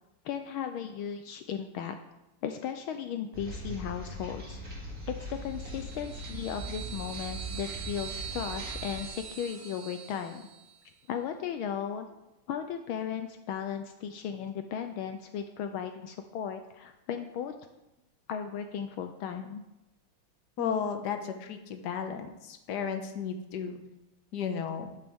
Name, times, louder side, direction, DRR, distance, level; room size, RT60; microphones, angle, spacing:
voice 1, 0.2-2.0 2.4-4.6 5.1-10.4 11.1-12.1 12.5-17.5 18.3-19.6, left 8 dB, 75° left, 7 dB, 1.5 m, -36 dB
sound 1, 3.3-9.1, right 1 dB, 40° right, 3.1 m, -40 dB
sound 2, 5.4-10.9, right 9 dB, 70° right, 0.4 m, -43 dB
voice 2, 20.6-23.8 24.3-24.9, left 7 dB, 55° left, 6 dB, 1.5 m, -34 dB
11.5 x 11.5 x 3.6 m, 0.94 s
omnidirectional pair, 2.4 m